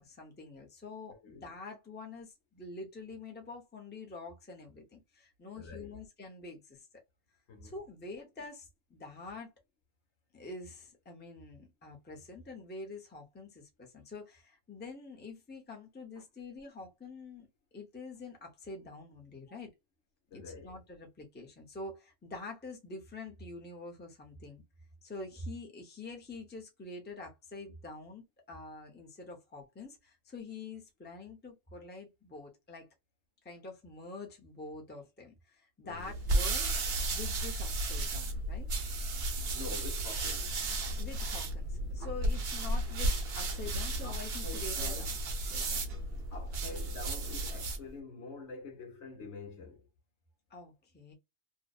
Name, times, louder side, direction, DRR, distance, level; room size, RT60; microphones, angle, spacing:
voice 1, 0.0-6.9 7.6-9.5 10.3-17.5 17.7-19.7 20.3-24.6 25.0-32.9 33.4-36.7 37.0-38.7 41.0-45.1 45.5-45.9 50.5-51.1, left 3 dB, 10° left, 0.5 m, -46 dB
voice 2, 5.5-6.0 7.5-7.7 19.5-19.6 20.3-20.8 35.8-36.2 39.5-40.6 44.0-45.1 46.3-49.9, left 4 dB, 80° left, 1.2 m, -46 dB
sound 1, 36.0-47.9, right 2 dB, 65° right, 0.9 m, -34 dB
2.7 x 2.0 x 2.3 m
omnidirectional pair, 1.2 m